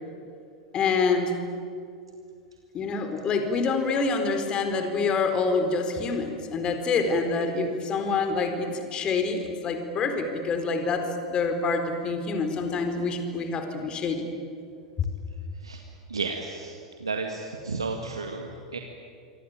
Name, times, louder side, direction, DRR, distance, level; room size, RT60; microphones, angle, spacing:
voice 1, 0.7-1.3 2.7-14.3, left 4 dB, 35° left, 7 dB, 4.3 m, -26 dB
voice 2, 16.1-16.7 17.0-18.8, right 4 dB, 85° right, 3 dB, 2.1 m, -32 dB
26.0 x 25.0 x 9.0 m, 2.4 s
figure-of-eight pair, 90°, 3 cm